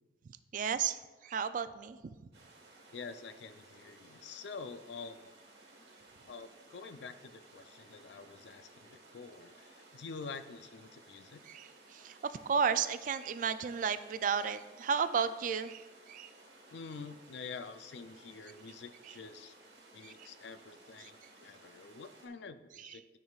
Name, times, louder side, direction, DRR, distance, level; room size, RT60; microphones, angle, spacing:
voice 1, 0.5-2.0 11.5-15.8 16.1-16.3 20.0-20.3 22.8-23.0, right 6 dB, 45° right, 13 dB, 0.3 m, -33 dB
sound 1, 2.3-22.3, right 2 dB, 65° right, 1.4 m, -58 dB
voice 2, 2.9-5.3 6.3-11.4 16.7-19.6 19.9-21.2 21.4-23.2, left 4 dB, 80° left, 11 dB, 0.4 m, -47 dB
12.5 x 5.5 x 2.4 m, 1.2 s
head